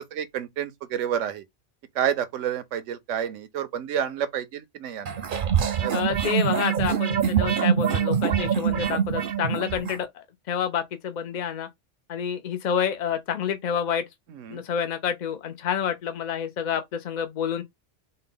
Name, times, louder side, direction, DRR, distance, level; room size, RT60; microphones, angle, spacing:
voice 1, 0.1-1.4 2.0-5.2 5.8-6.0 14.3-14.6, right 9 dB, 85° right, 1.0 m, -29 dB
sound 1, 5.1-10.0, right 8 dB, 55° right, 0.6 m, -24 dB
voice 2, 5.9-11.7 12.1-14.0 14.5-17.6, left 8 dB, 60° left, 0.4 m, -28 dB
4.4 x 2.1 x 3.7 m
omnidirectional pair, 1.2 m